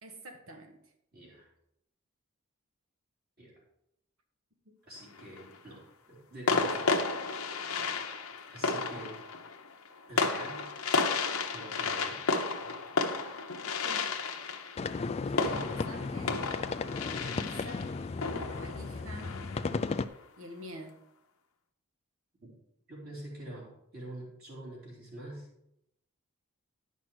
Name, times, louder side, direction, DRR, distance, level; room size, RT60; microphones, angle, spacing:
voice 1, 0.0-0.8 4.6-4.8 13.8-14.1 15.3-16.5 17.1-18.0 18.4-19.4 20.4-21.0, equal, 70° right, 1.4 m, -47 dB
voice 2, 1.1-1.5 3.4-3.5 4.8-7.1 8.5-9.2 10.1-10.7 11.5-12.2 22.4-22.5 22.9-25.5, right 1 dB, 45° right, 3.6 m, -46 dB
sound 1, 5.0-5.6 6.5-19.9, left 4 dB, 80° left, 1.0 m, -33 dB
sound 2, 14.8-20.1, left 4 dB, 30° left, 0.3 m, -35 dB
10.5 x 5.9 x 4.7 m
head